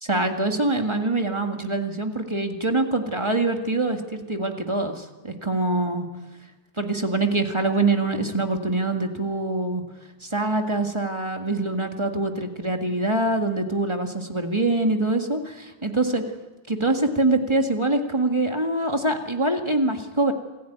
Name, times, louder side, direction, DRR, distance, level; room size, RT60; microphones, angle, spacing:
voice 1, 0.0-6.1 6.8-9.8 10.2-16.2 16.7-20.3, right 2 dB, 15° right, 4 dB, 1.7 m, -24 dB
27.5 x 15.0 x 9.3 m, 1.2 s
omnidirectional pair, 2.1 m